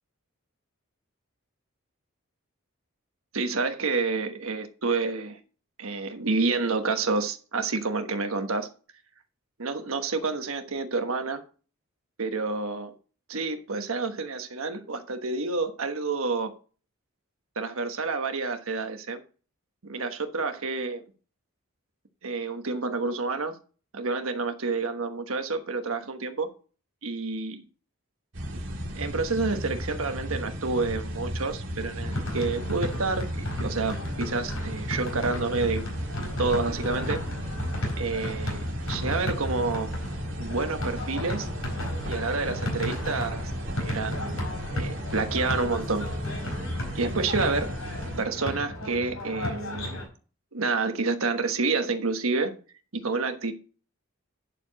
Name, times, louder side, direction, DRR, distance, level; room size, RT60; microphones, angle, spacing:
voice 1, 3.3-5.4 5.8-8.7 9.6-11.4 12.2-12.9 13.3-16.5 17.6-19.2 19.8-21.1 22.2-23.6 23.9-26.5 27.0-27.6 28.5-28.6 28.9-33.3 33.6-35.8 36.4-37.2 38.0-39.9 40.4-41.5 42.1-43.5 43.8-44.4 44.7-46.1 46.9-47.7 48.2-50.0 50.5-52.6 52.9-53.5, right 3 dB, 75° right, 7 dB, 1.2 m, -29 dB
sound 1, 28.3-48.2, equal, 60° right, 2.2 m, -35 dB
sound 2, 32.0-50.1, left 1 dB, 75° left, 4.8 m, -34 dB
10.5 x 4.7 x 6.3 m, 0.39 s
head